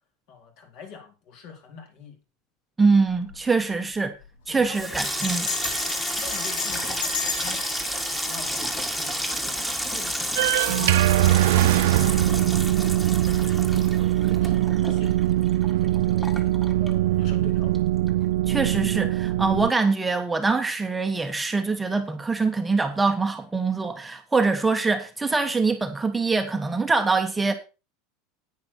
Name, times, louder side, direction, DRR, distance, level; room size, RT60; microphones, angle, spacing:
voice 1, 0.3-2.2 3.7-3.8 4.5-4.9 5.4-5.6 6.1-9.5 9.9-12.8 13.3-15.3 15.8-17.9, left 6 dB, 55° left, 3.9 m, -44 dB
voice 2, 2.8-4.1 4.5-5.5 18.5-27.5, right 4 dB, 10° right, 1.1 m, -24 dB
Bell, 3.1-3.4 3.7-3.8 4.0-4.4 5.2-9.3, left 6 dB, 80° left, 3.5 m, -34 dB
Water tap faucet / Sink (filling or washing), 4.6-17.5 17.7-18.4 18.7-19.0, equal, 5° left, 1.8 m, -31 dB
sound 1, 10.4-19.7, right 15 dB, 80° right, 0.4 m, -22 dB
10.5 x 9.5 x 4.4 m
supercardioid pair, 140°, 0 cm